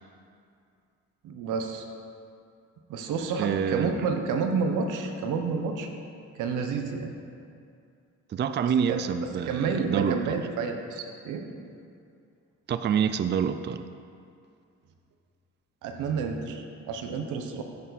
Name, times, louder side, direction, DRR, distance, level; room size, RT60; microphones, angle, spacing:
voice 1, 1.2-1.8 2.9-5.9 6.4-7.1 8.9-11.4 15.8-17.6, right 5 dB, 90° right, 5 dB, 1.1 m, -30 dB
voice 2, 3.4-4.0 8.3-10.4 12.7-13.9, right 7 dB, 35° right, 11 dB, 0.4 m, -27 dB
14.5 x 7.1 x 4.1 m, 2.4 s
cardioid pair, 90°, 30 cm